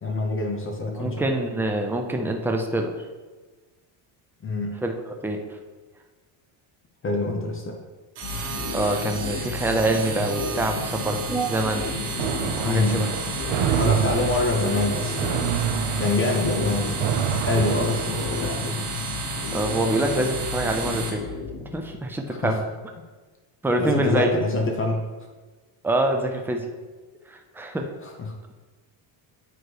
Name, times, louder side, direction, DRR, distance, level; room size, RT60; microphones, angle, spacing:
voice 1, 0.0-1.3 4.4-4.8 7.0-7.8 12.6-13.2 13.8-15.6 16.0-17.0 17.3-18.9 22.3-22.6 23.8-25.0 28.0-28.3, left 2 dB, 25° left, 2 dB, 0.7 m, -25 dB
voice 2, 1.0-2.9 4.8-4.9 5.2-5.4 8.7-11.9 12.6-13.1 19.5-21.2 21.7-22.6 23.6-24.4 25.8-26.7 27.3-27.9, right 1 dB, 5° right, 3 dB, 0.3 m, -25 dB
sound 1, 8.1-21.1, right 4 dB, 85° right, 1.9 m, -33 dB
sound 2, 8.2-22.0, left 5 dB, 55° left, 1.0 m, -33 dB
sound 3, 12.2-18.6, right 9 dB, 65° right, 0.7 m, -28 dB
9.0 x 3.1 x 4.6 m, 1.3 s
cardioid pair, 145°, 50 cm